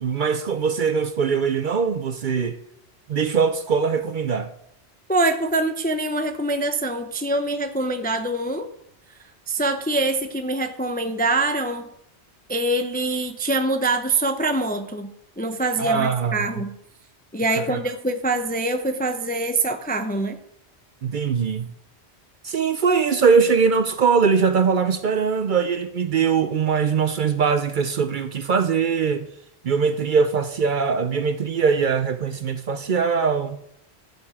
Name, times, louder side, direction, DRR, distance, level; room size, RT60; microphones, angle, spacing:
voice 1, 0.0-2.6 3.1-4.5 15.8-16.5 17.6-17.8 21.0-21.7 22.4-29.3 29.6-33.6, right 6 dB, 55° right, 0.6 m, -21 dB
voice 2, 5.1-8.7 9.5-11.9 12.5-15.1 15.4-16.7 17.3-20.4, right 2 dB, 10° left, 0.4 m, -24 dB
12.0 x 6.7 x 4.8 m
omnidirectional pair, 1.2 m